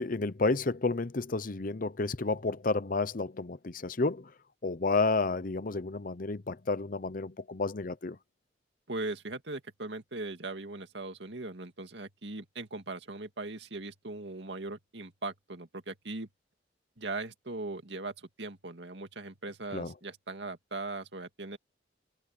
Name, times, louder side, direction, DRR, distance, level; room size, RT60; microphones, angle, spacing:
voice 1, 0.0-4.3 4.6-8.2 19.7-19.9, left 3 dB, 50° left, 0.8 m, -31 dB
voice 2, 8.9-16.3 17.0-21.6, right 2 dB, 70° right, 2.3 m, -39 dB
head